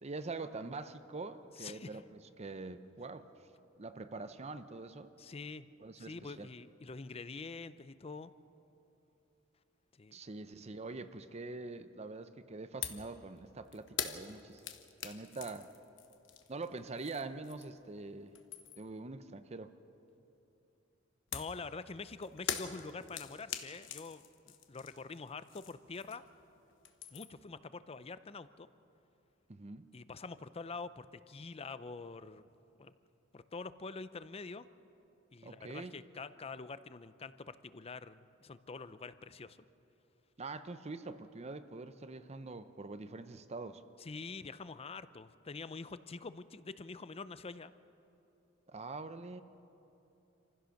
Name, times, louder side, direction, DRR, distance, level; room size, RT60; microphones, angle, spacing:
voice 1, 0.0-3.2 3.8-5.1 5.8-6.5 10.1-14.6 15.0-15.7 16.5-18.3 18.8-19.7 29.5-29.9 35.4-35.9 40.4-43.8 48.7-49.4, right 3 dB, 35° right, 11 dB, 0.7 m, -44 dB
voice 2, 1.6-2.0 5.2-5.7 6.0-8.3 10.0-10.2 21.3-26.2 27.1-28.7 29.9-32.4 32.8-32.9 33.3-34.6 35.3-39.6 44.0-47.7, left 4 dB, 30° left, 14 dB, 0.5 m, -46 dB
sound 1, 12.8-13.1 13.4-17.9 18.2-19.0 21.3-26.4 26.7-27.5, left 8 dB, 70° left, 1.2 m, -43 dB
27.0 x 15.5 x 6.4 m, 2.9 s
head